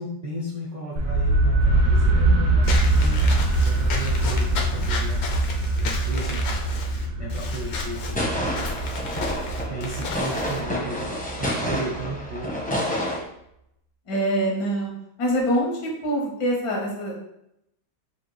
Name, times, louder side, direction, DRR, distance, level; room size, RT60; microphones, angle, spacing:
voice 1, 0.0-3.3 3.6-5.2 5.8-6.6 7.2-9.3 9.7-11.1 11.4-12.5, right 1 dB, 60° right, -5 dB, 0.4 m, -34 dB
sound 1, 1.0-12.8, right 2 dB, 75° right, 1.3 m, -23 dB
Walk footsteps / Squeak, 2.6-10.6, left 4 dB, 65° left, 0.6 m, -33 dB
sound 2, 8.1-13.2, equal, 10° left, 0.4 m, -29 dB
voice 2, 14.1-14.9 15.2-17.1, equal, 80° left, -2 dB, 1.7 m, -24 dB
5.8 x 2.5 x 3.0 m, 0.78 s
omnidirectional pair, 1.8 m